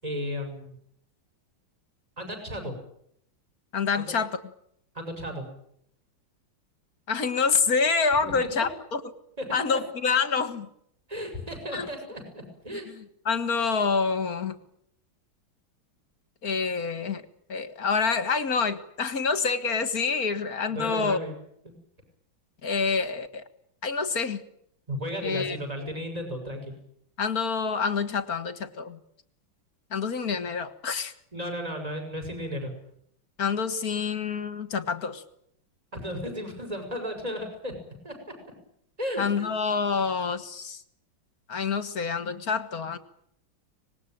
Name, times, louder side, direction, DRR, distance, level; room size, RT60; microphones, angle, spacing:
voice 1, 0.0-0.8 2.2-2.7 4.0-4.1 4.9-5.5 8.2-8.7 9.4-9.5 9.7-9.8 11.1-12.9 20.7-21.4 21.6-21.7 24.9-26.7 31.3-32.7 35.9-37.7 38.0-38.2 39.0-39.5, equal, 15° right, 5 dB, 6.3 m, -34 dB
voice 2, 3.7-4.4 7.1-9.0 9.5-10.7 11.7-11.9 12.9-14.6 16.4-17.2 17.5-21.2 22.6-23.4 23.8-24.4 25.2-25.6 27.2-29.0 29.9-31.1 33.4-35.2 39.2-40.8 41.5-43.0, left 5 dB, 45° left, 12 dB, 2.0 m, -27 dB
25.0 x 20.5 x 9.0 m, 0.72 s
omnidirectional pair, 2.2 m